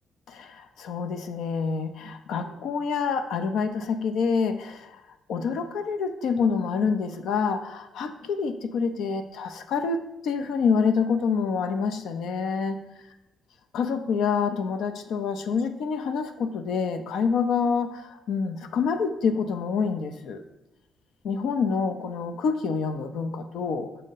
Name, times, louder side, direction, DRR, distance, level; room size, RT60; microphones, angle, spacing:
voice 1, 0.3-5.0 5.3-12.8 13.7-20.4 21.2-23.9, left 5 dB, 75° left, 8 dB, 0.5 m, -27 dB
6.4 x 2.7 x 5.6 m, 0.96 s
cardioid pair, 90°, 0 cm